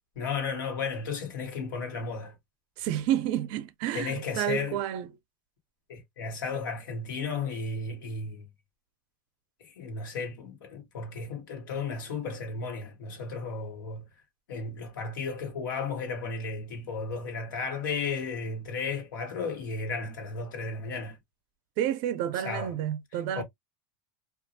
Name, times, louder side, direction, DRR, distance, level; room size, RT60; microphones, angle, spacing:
voice 1, 0.2-2.3 3.9-4.8 5.9-8.5 9.6-14.1 14.5-21.2 22.3-22.7 23.3-23.4, left 4 dB, 85° left, 1.2 m, -34 dB
voice 2, 2.8-5.1 21.8-23.4, right 11 dB, 50° right, 0.5 m, -30 dB
2.3 x 2.0 x 2.7 m
supercardioid pair, 140°, 10 cm